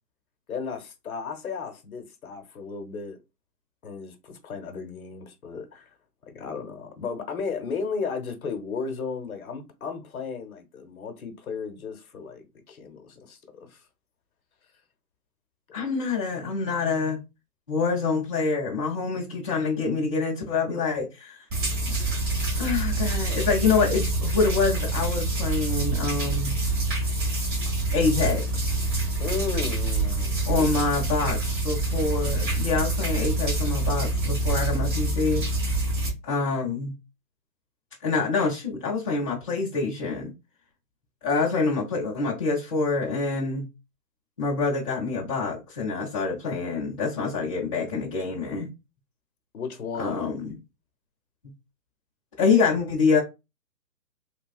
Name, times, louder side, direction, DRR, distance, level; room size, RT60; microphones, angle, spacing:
voice 1, 0.5-3.2 3.8-5.9 6.3-13.8 29.2-30.6 49.5-50.2, left 5 dB, 60° left, 0.9 m, -34 dB
voice 2, 15.7-17.2 17.7-21.4 22.0-22.1 22.6-26.5 27.9-28.8 30.5-35.4 36.2-36.9 38.0-40.3 41.2-43.7 44.4-48.7 50.0-50.6 52.4-53.2, left 4 dB, 20° left, 0.6 m, -26 dB
sound 1, 21.5-36.1, right 2 dB, 30° right, 1.2 m, -26 dB
3.3 x 2.2 x 2.3 m
hypercardioid pair, 145°, 49 cm